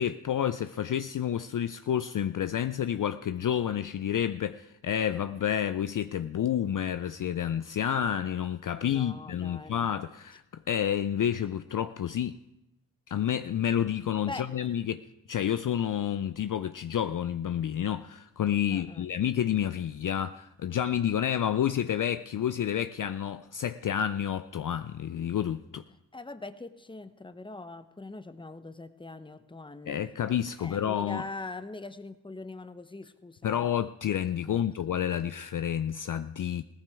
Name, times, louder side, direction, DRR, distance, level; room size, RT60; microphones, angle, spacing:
voice 1, 0.0-12.4 13.1-15.0 15.3-25.8 29.9-31.2 33.4-36.6, left 9 dB, 45° left, 0.5 m, -29 dB
voice 2, 8.7-9.9 14.3-14.7 18.7-19.1 26.1-30.0 30.6-33.6 34.4-34.6, left 2 dB, 10° left, 0.8 m, -42 dB
16.5 x 14.5 x 3.5 m
supercardioid pair, 40°, 44 cm